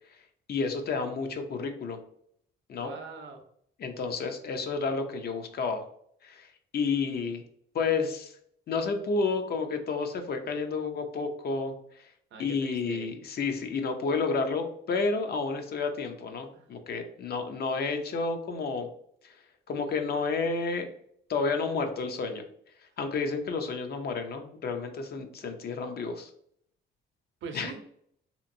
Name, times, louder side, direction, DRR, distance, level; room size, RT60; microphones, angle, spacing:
voice 1, 0.5-2.0 2.7-2.9 3.8-5.8 6.2-7.4 7.7-8.4 8.7-11.7 12.4-18.9 19.2-19.4 19.7-20.9 21.3-22.4 23.0-26.3 27.5-27.7, left 4 dB, 55° left, 6 dB, 0.5 m, -30 dB
voice 2, 2.8-3.4 12.3-13.1 16.5-16.7 27.4-27.8, right 4 dB, 70° right, 4 dB, 0.6 m, -42 dB
2.8 x 2.5 x 2.6 m, 0.67 s
cardioid pair, 90°, 20 cm